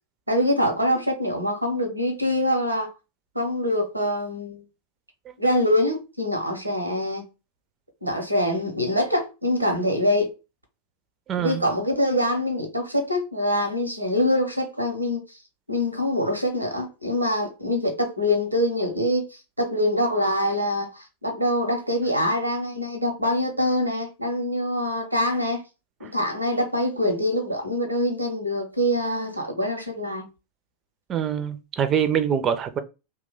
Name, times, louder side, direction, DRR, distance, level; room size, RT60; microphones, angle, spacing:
voice 1, 0.3-2.9 3.3-4.6 5.4-7.2 8.0-10.3 11.4-15.2 15.7-25.6 26.0-30.3, left 1 dB, 85° right, 0.8 m, -24 dB
voice 2, 11.3-11.6 31.1-32.8, right 8 dB, 30° right, 0.5 m, -24 dB
2.8 x 2.2 x 3.8 m
figure-of-eight pair, 90°, 0 cm